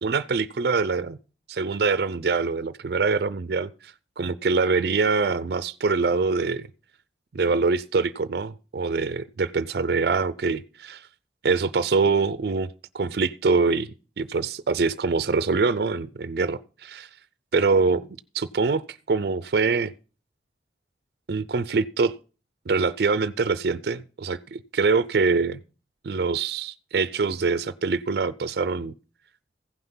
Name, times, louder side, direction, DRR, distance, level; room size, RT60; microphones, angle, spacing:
voice 1, 0.0-1.2 1.5-6.6 7.3-11.1 11.4-13.9 14.2-17.1 17.5-18.0 18.3-19.9 21.3-22.1 22.7-25.6 26.0-28.9, right 4 dB, 60° right, 0.4 m, -24 dB
15.0 x 5.8 x 5.5 m
head